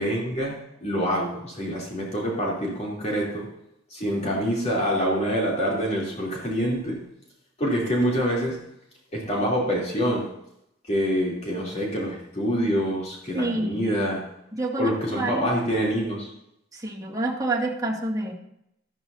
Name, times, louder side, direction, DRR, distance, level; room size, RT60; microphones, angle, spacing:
voice 1, 0.0-3.5 3.9-7.0 7.6-8.6 9.1-10.3 10.9-14.2 14.8-16.3, equal, 35° left, -4 dB, 3.2 m, -26 dB
voice 2, 13.3-13.9 14.5-15.5 16.7-18.3, right 2 dB, 20° right, -4 dB, 2.2 m, -28 dB
13.0 x 12.5 x 2.7 m, 0.79 s
head